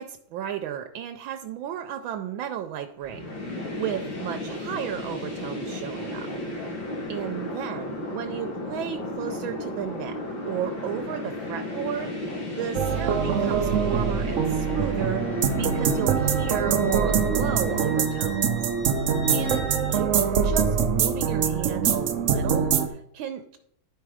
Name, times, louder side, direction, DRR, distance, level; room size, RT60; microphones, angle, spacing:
voice 1, 0.0-3.3 3.8-6.3 7.1-10.2 10.5-18.7 19.3-20.1 20.4-23.6, right 10 dB, 85° right, 5 dB, 1.4 m, -34 dB
sound 1, 3.0-18.0, left 1 dB, 75° left, 3.0 m, -34 dB
sound 2, 12.7-22.9, right 6 dB, 65° right, 0.8 m, -24 dB
Wind instrument woodwind instrument, 14.2-20.0, left 1 dB, 40° left, 2.3 m, -43 dB
11.5 x 4.6 x 4.8 m, 0.71 s
omnidirectional pair, 2.1 m